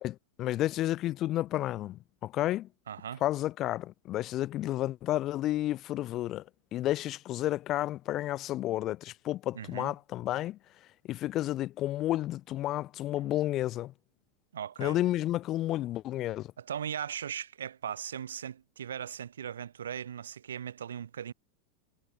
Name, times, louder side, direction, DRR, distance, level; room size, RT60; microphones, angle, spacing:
voice 1, 0.0-2.7 3.2-6.4 6.7-10.6 11.1-13.9 14.8-16.5, left 14 dB, 35° left, 1.4 m, -31 dB
voice 2, 2.9-3.2 9.5-9.9 14.5-15.0 16.6-21.3, right 9 dB, 65° right, 1.0 m, -38 dB
figure-of-eight pair, 90°, 0 cm